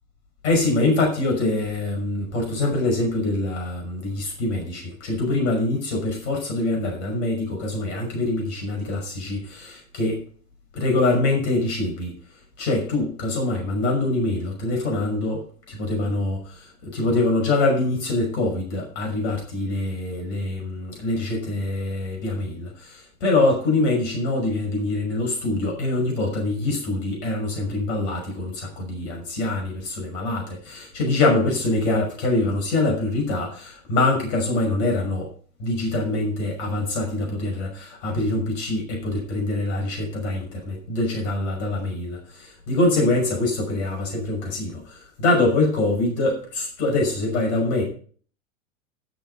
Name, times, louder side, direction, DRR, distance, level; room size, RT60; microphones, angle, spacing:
voice 1, 0.4-10.2 10.7-12.1 12.6-35.3 35.6-47.8, left 2 dB, 65° left, 1 dB, 5.9 m, -24 dB
13.5 x 7.0 x 5.5 m, 0.43 s
hypercardioid pair, 95°, 40 cm